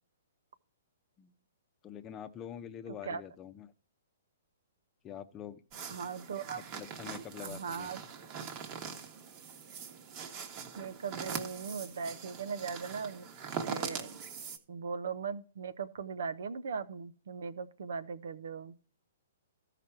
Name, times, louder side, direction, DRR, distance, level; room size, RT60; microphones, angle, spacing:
voice 1, 1.8-3.7 5.0-5.6 6.8-7.9, left 9 dB, 25° left, 0.8 m, -45 dB
voice 2, 2.9-3.2 5.9-6.6 7.4-8.0 10.8-14.2 14.7-18.7, right 6 dB, 70° right, 0.8 m, -39 dB
sound 1, 5.7-14.6, right 6 dB, 35° right, 1.3 m, -42 dB
13.5 x 5.0 x 4.5 m
hypercardioid pair, 130°, 0 cm